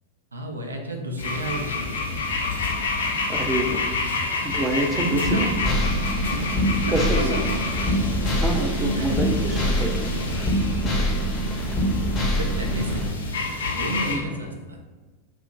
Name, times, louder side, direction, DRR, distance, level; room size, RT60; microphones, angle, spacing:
voice 1, 0.3-2.3 4.9-5.4 6.2-7.6 8.8-9.2 12.4-14.8, right 1 dB, 85° right, 2 dB, 0.4 m, -32 dB
sound 1, 1.2-14.2, left 3 dB, 75° left, 0.6 m, -29 dB
voice 2, 3.3-3.9 4.4-5.5 6.9-7.5 8.4-10.1 10.4-10.5 11.5-11.7 14.1-14.2, right 1 dB, 20° right, 3 dB, 0.5 m, -27 dB
sound 2, 5.3-13.1, equal, 30° left, 0.9 m, -24 dB
2.8 x 2.5 x 3.6 m, 1.3 s
figure-of-eight pair, 90°, 0 cm